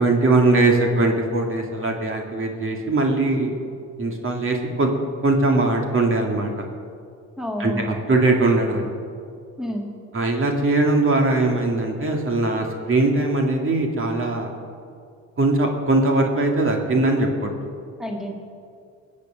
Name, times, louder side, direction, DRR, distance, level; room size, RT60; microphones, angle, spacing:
voice 1, 0.0-3.6 4.0-5.0 5.2-6.7 7.6-8.9 10.1-14.5 15.4-17.5, right 2 dB, 45° right, 1 dB, 2.4 m, -20 dB
voice 2, 7.4-7.9 9.6-9.9 18.0-18.3, equal, ahead, 0 dB, 2.3 m, -29 dB
21.0 x 8.5 x 6.4 m, 2.3 s
cardioid pair, 90°, 30 cm